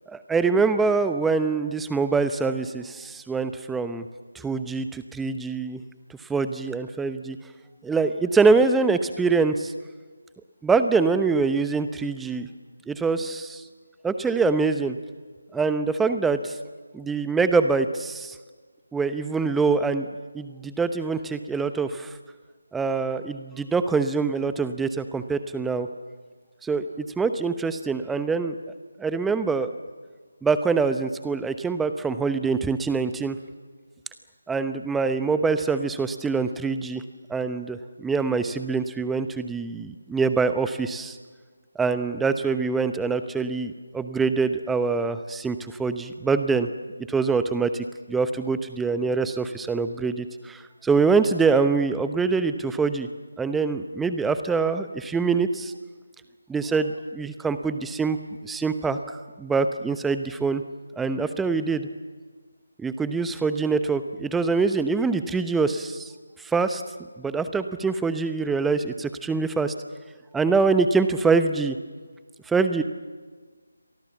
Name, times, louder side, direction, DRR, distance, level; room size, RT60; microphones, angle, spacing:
voice 1, 0.1-4.1 4.3-5.8 6.3-7.4 7.8-9.7 10.6-12.5 12.9-13.6 14.0-15.0 15.5-16.6 16.9-18.3 18.9-20.0 20.3-22.1 22.7-25.9 26.6-28.5 29.0-29.7 30.4-33.4 34.5-37.0 37.3-41.2 41.7-46.7 47.1-53.1 53.4-55.7 56.5-58.2 58.4-60.6 61.0-61.9 62.8-66.1 66.4-66.8 67.2-69.7 70.3-71.8 72.5-72.8, right 4 dB, 5° right, 10 dB, 0.9 m, -24 dB
29.5 x 24.0 x 7.3 m, 1.4 s
figure-of-eight pair, 155°, 0 cm